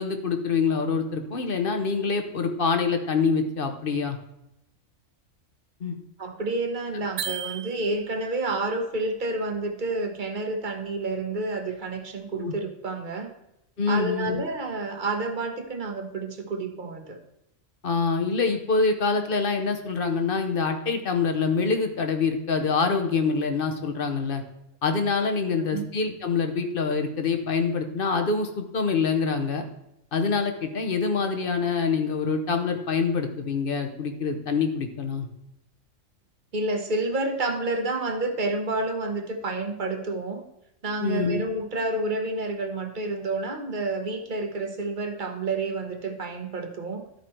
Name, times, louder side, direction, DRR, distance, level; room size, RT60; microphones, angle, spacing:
voice 1, 0.0-4.2 5.8-5.9 12.3-12.5 13.8-14.4 17.8-24.4 24.8-29.6 30.1-35.3 41.0-41.4, left 4 dB, 50° left, 6 dB, 1.0 m, -25 dB
voice 2, 6.2-13.3 13.9-17.2 25.6-25.8 36.5-40.4 40.8-47.0, right 2 dB, 45° right, 5 dB, 1.0 m, -29 dB
sound 1, 7.2-8.3, right 9 dB, 70° right, 0.9 m, -34 dB
12.0 x 5.0 x 4.4 m, 0.84 s
omnidirectional pair, 1.3 m